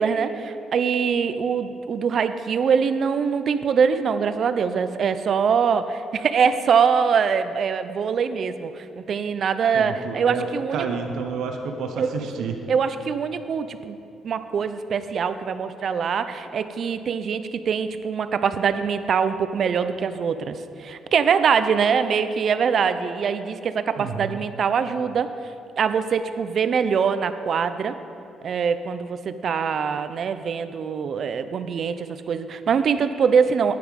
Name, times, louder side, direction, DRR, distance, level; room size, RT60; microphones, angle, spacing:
voice 1, 0.0-10.9 12.0-12.1 12.7-14.0 14.2-25.3 25.8-27.9 28.4-33.8, right 6 dB, 55° right, 11 dB, 0.6 m, -23 dB
voice 2, 9.7-10.5 10.7-12.6 24.0-24.4, right 5 dB, 80° right, 4 dB, 0.9 m, -30 dB
9.6 x 9.5 x 5.3 m, 2.6 s
cardioid pair, 90°, 0 cm